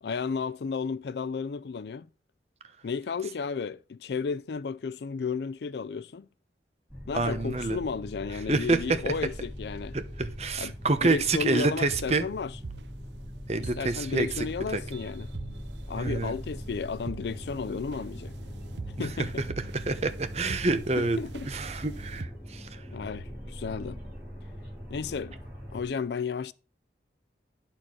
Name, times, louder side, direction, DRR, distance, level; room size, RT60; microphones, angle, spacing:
voice 1, 0.0-2.1 2.8-6.3 7.1-10.0 10.6-10.8 11.0-12.6 13.6-15.3 15.9-18.3 19.0-19.4 20.9-21.5 22.9-24.0 24.9-25.4 25.7-26.5, left 5 dB, 75° left, 0.4 m, -33 dB
sound 1, 6.9-25.9, equal, 10° right, 5.5 m, -41 dB
voice 2, 7.1-7.8 8.5-8.8 9.9-12.2 13.5-14.3 14.7-14.8 16.0-16.3 19.0-19.1 19.9-21.2 21.5-22.3 22.5-22.7, right 3 dB, 35° right, 0.9 m, -27 dB
sound 2, 8.6-8.9 9.2-9.4 10.2-10.4 11.1-22.3, right 4 dB, 90° right, 0.6 m, -45 dB
10.0 x 4.5 x 6.0 m
head